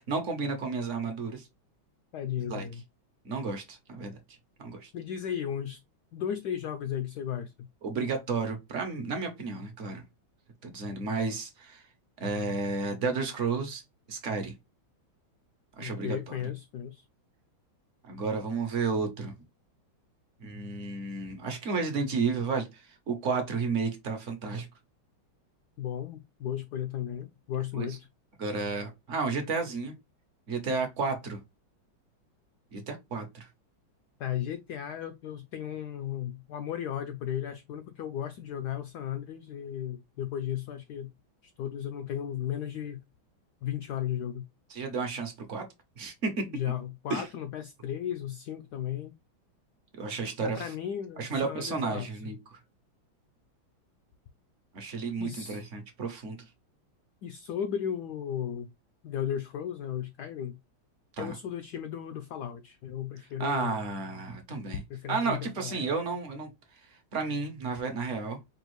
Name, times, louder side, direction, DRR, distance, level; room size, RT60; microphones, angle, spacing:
voice 1, 0.0-1.5 2.5-2.7 3.2-4.2 4.6-4.9 7.8-10.0 10.6-11.8 12.2-13.8 14.1-14.5 15.8-16.4 18.0-19.3 20.4-24.7 27.7-28.0 28.4-29.9 30.5-31.4 32.7-33.5 44.7-45.7 46.0-46.5 47.1-47.3 50.0-50.7 51.2-52.6 54.7-56.4 61.2-61.4 63.4-64.8 65.1-68.4, right 4 dB, 55° right, 0.9 m, -32 dB
voice 2, 2.1-2.8 4.9-5.8 6.1-7.7 15.8-17.0 25.8-28.1 34.2-41.1 41.4-43.0 43.6-44.5 46.5-49.1 50.4-52.3 55.2-55.7 57.2-58.7 59.0-60.6 61.2-63.7 64.9-65.8, left 9 dB, 80° left, 0.9 m, -35 dB
5.3 x 2.4 x 3.1 m
omnidirectional pair, 2.2 m